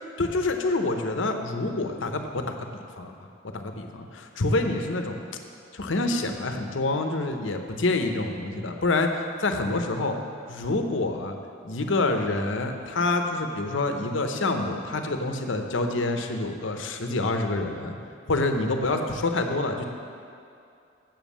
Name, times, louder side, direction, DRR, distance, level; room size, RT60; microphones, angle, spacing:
voice 1, 0.2-3.1 3.5-5.2 5.7-10.1 10.5-11.3 11.6-18.0 18.3-19.9, left 2 dB, 80° left, 5 dB, 0.8 m, -27 dB
7.5 x 7.3 x 7.3 m, 2.5 s
head